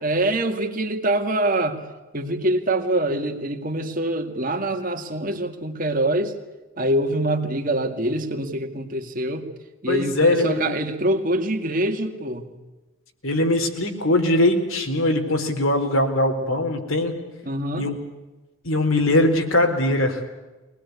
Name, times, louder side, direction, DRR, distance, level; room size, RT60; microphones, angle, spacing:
voice 1, 0.0-1.8 2.1-6.3 6.8-9.5 9.8-12.5 17.5-17.9, right 1 dB, 40° right, 5 dB, 2.2 m, -24 dB
voice 2, 9.9-10.7 13.2-17.1 17.8-18.0 18.6-20.2, left 1 dB, 80° left, 4 dB, 4.1 m, -21 dB
23.5 x 19.5 x 9.6 m, 1.1 s
head